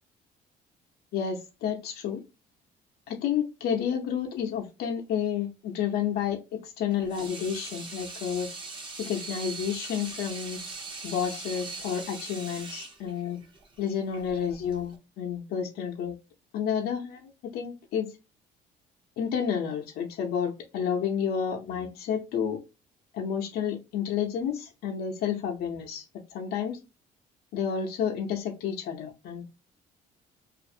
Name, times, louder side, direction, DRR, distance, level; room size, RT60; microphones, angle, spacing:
voice 1, 1.1-2.2 3.1-8.5 9.0-10.6 11.0-13.4 13.8-16.2 16.5-18.1 19.2-22.6 23.1-26.0 26.3-26.8 27.5-29.4, left 8 dB, 70° left, 0.6 m, -30 dB
Water tap faucet / Sink (filling or washing), 6.9-15.0, right 3 dB, 30° right, 0.7 m, -41 dB
2.5 x 2.4 x 2.6 m
cardioid pair, 110°, 17 cm